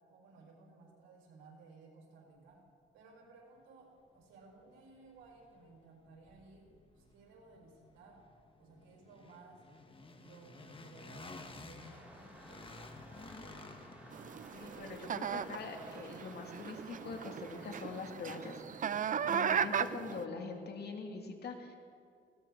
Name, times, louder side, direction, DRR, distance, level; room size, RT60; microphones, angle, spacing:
voice 1, 0.1-8.3 8.6-9.7 10.1-13.9, right 3 dB, 90° right, -2 dB, 5.3 m, -58 dB
sound 1, 3.6-3.7 4.2-20.1, left 3 dB, 25° left, 1.4 m, -55 dB
sound 2, 11.8-18.5, equal, 5° right, 5.1 m, -57 dB
sound 3, 14.1-20.2, right 8 dB, 40° right, 0.5 m, -37 dB
voice 2, 14.5-21.8, left 4 dB, 55° left, 3 dB, 2.3 m, -44 dB
20.0 x 17.5 x 3.9 m, 2.2 s
cardioid pair, 90°, 20 cm